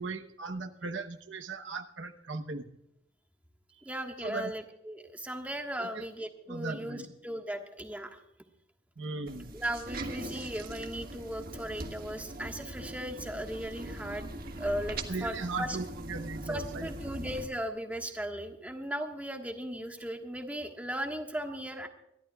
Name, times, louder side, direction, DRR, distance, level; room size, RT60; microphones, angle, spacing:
voice 1, 0.0-2.6 4.2-4.5 5.8-6.0 6.5-7.1 9.0-9.5 15.1-16.9, right 3 dB, 70° right, 6 dB, 1.0 m, -37 dB
voice 2, 3.8-8.2 9.5-14.3 14.6-15.8 16.5-21.9, equal, 10° right, 3 dB, 1.5 m, -37 dB
sound 1, 9.3-17.5, right 1 dB, 50° right, 1.5 m, -41 dB
25.5 x 12.5 x 2.4 m, 0.80 s
head